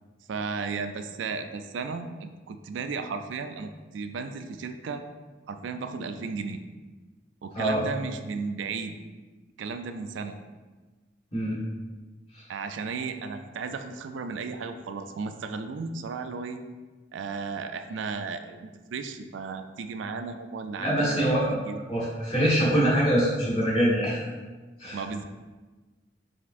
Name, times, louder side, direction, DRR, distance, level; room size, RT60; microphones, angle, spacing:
voice 1, 0.3-5.0 5.5-6.6 7.4-9.0 9.6-10.4 12.5-16.6 17.1-21.8 24.9-25.2, right 4 dB, 90° right, 8 dB, 0.3 m, -34 dB
voice 2, 11.3-11.6 12.3-12.5 20.8-21.4 21.9-24.2 24.8-25.0, equal, 35° left, -6 dB, 1.4 m, -24 dB
5.2 x 3.5 x 2.5 m, 1.3 s
head